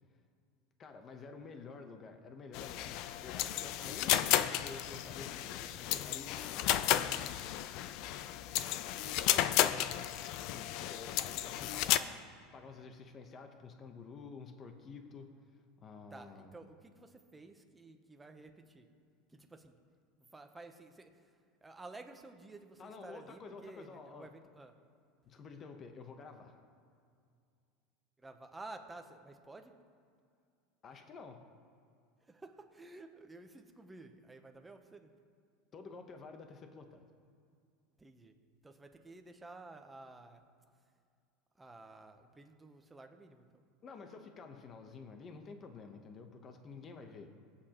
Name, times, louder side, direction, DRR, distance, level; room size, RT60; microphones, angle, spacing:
voice 1, 0.8-6.9 9.3-9.6 10.4-12.2 12.5-15.3 15.8-16.6 22.8-24.3 25.2-26.6 30.8-31.4 35.7-37.0 43.8-47.3, left 4 dB, 25° left, 6 dB, 0.9 m, -50 dB
sound 1, 2.5-12.0, left 12 dB, 55° left, 0.4 m, -33 dB
voice 2, 8.9-9.5 9.8-9.9 16.1-18.9 19.3-19.7 20.3-21.1 21.6-24.7 28.2-29.7 32.3-35.1 38.0-38.3 38.6-40.4 41.6-43.6, right 2 dB, 10° right, 6 dB, 0.8 m, -52 dB
20.0 x 8.6 x 3.0 m, 2.3 s
supercardioid pair, 145°, 0 cm